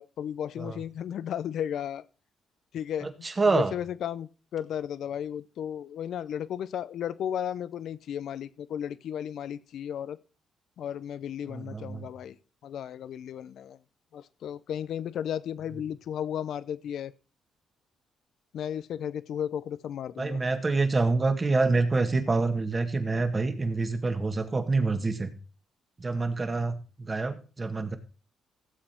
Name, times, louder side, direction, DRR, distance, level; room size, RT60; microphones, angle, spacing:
voice 1, 0.0-2.0 2.7-3.1 3.5-10.2 10.8-12.4 12.6-13.8 14.1-17.1 18.5-20.4, left 9 dB, 70° left, 17 dB, 0.7 m, -34 dB
voice 2, 3.0-3.7 11.5-12.1 20.2-25.3 26.0-28.0, right 3 dB, 30° right, 7 dB, 1.8 m, -27 dB
16.0 x 7.7 x 4.4 m, 0.36 s
cardioid pair, 90°, 0 cm